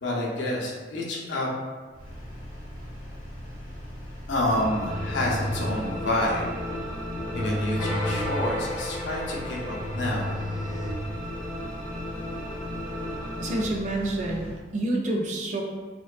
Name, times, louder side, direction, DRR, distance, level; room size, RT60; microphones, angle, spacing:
voice 1, 0.0-1.5 4.3-6.5 7.3-10.4, left 1 dB, 70° left, -3 dB, 0.5 m, -28 dB
Engine, 1.9-14.6, equal, 70° right, 1.0 m, -40 dB
sound 1, 4.5-11.5, left 1 dB, 15° left, 0.6 m, -33 dB
sound 2, 4.5-13.6, left 1 dB, 20° right, 0.9 m, -35 dB
voice 2, 13.4-15.6, right 1 dB, 40° right, 0 dB, 0.3 m, -28 dB
2.4 x 2.2 x 2.3 m, 1.4 s
head